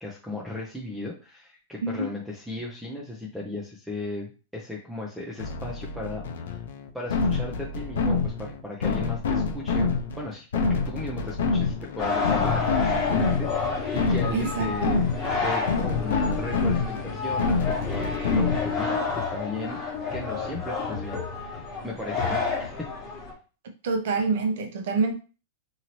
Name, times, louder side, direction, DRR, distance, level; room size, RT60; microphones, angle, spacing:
voice 1, 0.0-6.6 6.9-15.0 15.4-19.8 20.1-22.9, left 2 dB, ahead, -3 dB, 0.5 m, -36 dB
sound 1, 5.4-18.9, left 4 dB, 80° left, 0.5 m, -27 dB
sound 2, 12.0-23.3, left 4 dB, 20° left, 1.1 m, -29 dB
voice 2, 14.3-15.0 23.8-25.1, right 4 dB, 65° right, 5 dB, 0.8 m, -26 dB
2.8 x 2.7 x 3.0 m, 0.35 s
supercardioid pair, 160°, 0 cm